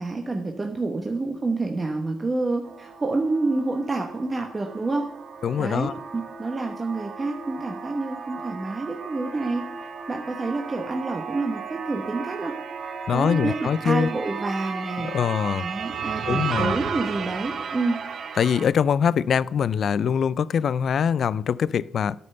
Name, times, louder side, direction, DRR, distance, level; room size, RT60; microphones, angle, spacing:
voice 1, 0.0-5.1 5.6-9.7 10.1-12.5 13.1-15.1 15.6-18.0, right 3 dB, 30° right, 3 dB, 1.0 m, -28 dB
sound 1, 2.6-18.7, right 6 dB, 60° right, 0.8 m, -34 dB
voice 2, 5.4-5.9 13.1-14.1 15.0-15.6 16.3-16.7 18.4-22.2, left 7 dB, 65° left, 20 dB, 0.3 m, -23 dB
9.4 x 5.6 x 6.5 m, 0.86 s
cardioid pair, 80°, 0 cm